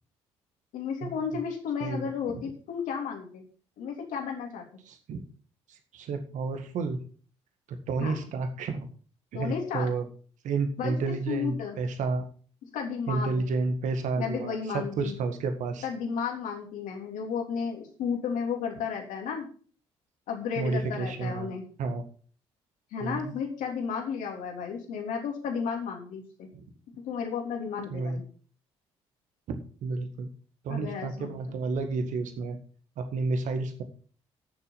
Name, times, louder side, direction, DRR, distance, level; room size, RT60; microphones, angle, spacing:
voice 1, 0.7-3.4 3.8-4.6 8.0-8.2 9.3-9.9 10.8-10.9 11.3-11.8 12.7-13.4 14.1-15.1 15.8-19.5 20.3-21.6 22.9-26.5 27.0-28.2 30.7-31.5, left 6 dB, 65° left, 2 dB, 3.3 m, -33 dB
voice 2, 1.8-2.4 4.9-5.2 5.7-7.0 7.7-8.9 9.3-10.1 10.4-12.3 13.1-15.9 20.6-21.5 21.8-22.0 23.0-23.3 26.5-26.6 27.9-28.2 29.5-30.3 30.6-32.6 33.0-33.8, right 4 dB, 60° right, 7 dB, 1.8 m, -31 dB
11.0 x 7.1 x 6.0 m, 0.43 s
hypercardioid pair, 50°, 14 cm